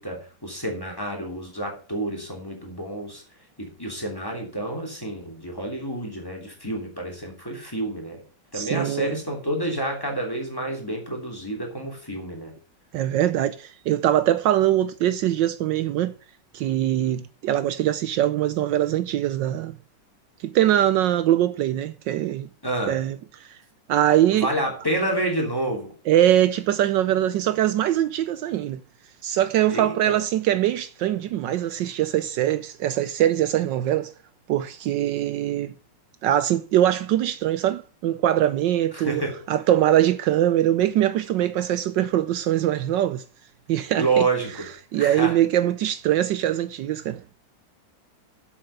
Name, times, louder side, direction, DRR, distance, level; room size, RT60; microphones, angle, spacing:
voice 1, 0.0-3.2 3.6-8.2 8.5-12.5 22.6-23.0 24.3-25.9 29.7-30.2 38.9-39.4 44.0-44.7 44.9-45.4, right 2 dB, 10° left, 2.9 m, -29 dB
voice 2, 8.5-9.2 12.9-16.1 16.5-19.8 20.4-22.5 22.9-23.6 23.9-24.5 26.1-28.8 29.2-34.1 34.5-35.7 36.2-39.2 39.5-43.2 43.7-44.3 44.9-47.4, right 12 dB, 75° right, 1.3 m, -22 dB
7.7 x 7.3 x 6.9 m
omnidirectional pair, 2.1 m